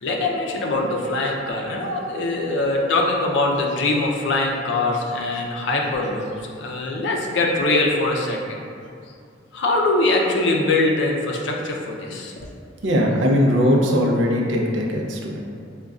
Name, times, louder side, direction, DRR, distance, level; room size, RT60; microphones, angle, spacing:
voice 1, 0.0-8.6 9.5-12.5, left 2 dB, 65° left, 0 dB, 0.5 m, -22 dB
voice 2, 12.8-15.4, equal, 75° right, -1 dB, 0.5 m, -19 dB
5.0 x 2.2 x 2.3 m, 2.3 s
head